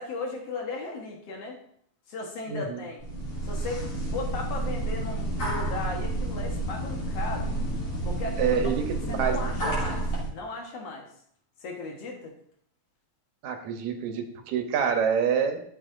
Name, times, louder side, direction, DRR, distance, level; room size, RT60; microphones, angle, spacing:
voice 1, 0.0-1.6 2.1-3.0 3.4-7.5 8.0-8.7 9.1-11.1 11.6-12.3, left 3 dB, 60° left, 1 dB, 2.3 m, -36 dB
voice 2, 2.5-2.8 8.4-9.5 13.4-15.6, right 7 dB, 75° right, 5 dB, 2.2 m, -27 dB
sound 1, 3.0-10.3, right 2 dB, 45° left, 3.9 m, -30 dB
13.0 x 7.2 x 2.6 m, 0.66 s
omnidirectional pair, 3.3 m